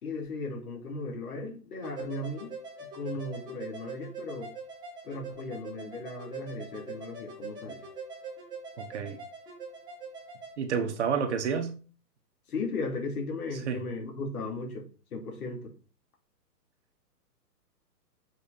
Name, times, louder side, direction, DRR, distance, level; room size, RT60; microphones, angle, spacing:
voice 1, 0.0-2.5 2.9-4.5 5.0-7.8 12.5-15.7, left 2 dB, 60° left, 3.0 m, -36 dB
sound 1, 1.8-10.5, right 3 dB, 10° right, 1.1 m, -43 dB
voice 2, 8.8-9.2 10.6-11.7 13.7-13.8, right 6 dB, 45° right, 1.2 m, -29 dB
6.9 x 4.3 x 4.2 m
hypercardioid pair, 160°, 50 cm